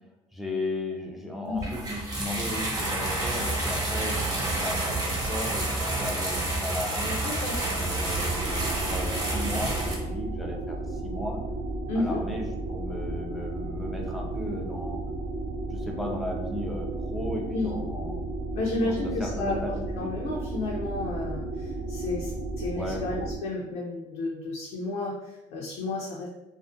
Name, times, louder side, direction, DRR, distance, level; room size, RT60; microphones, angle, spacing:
voice 1, 0.3-7.2 7.8-11.4 12.0-15.0 15.7-18.2 18.8-18.9 19.2-20.1 22.7-23.0, left 1 dB, ahead, 0 dB, 0.3 m, -36 dB
sound 1, 1.6-9.9, right 2 dB, 30° right, 0.7 m, -29 dB
voice 2, 7.2-7.6 11.9-12.2 17.5-17.8 18.5-26.3, left 2 dB, 80° left, -3 dB, 0.4 m, -32 dB
sound 2, 7.6-23.4, right 2 dB, 90° right, 0.6 m, -34 dB
2.4 x 2.4 x 2.5 m, 1.0 s
cardioid pair, 135°, 13 cm